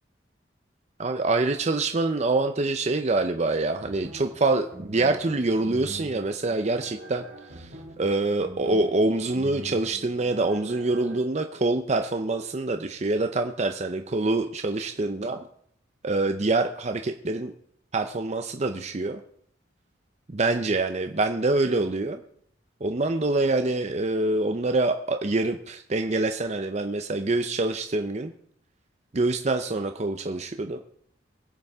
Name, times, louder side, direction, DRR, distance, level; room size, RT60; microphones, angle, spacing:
voice 1, 1.0-7.2 7.5-15.4 16.0-17.5 17.9-19.2 20.3-22.2 22.8-28.3 29.1-30.8, right 2 dB, 35° right, 6 dB, 0.6 m, -25 dB
sound 1, 3.8-11.2, right 1 dB, 60° right, 2.0 m, -44 dB
22.0 x 8.2 x 3.5 m, 0.66 s
head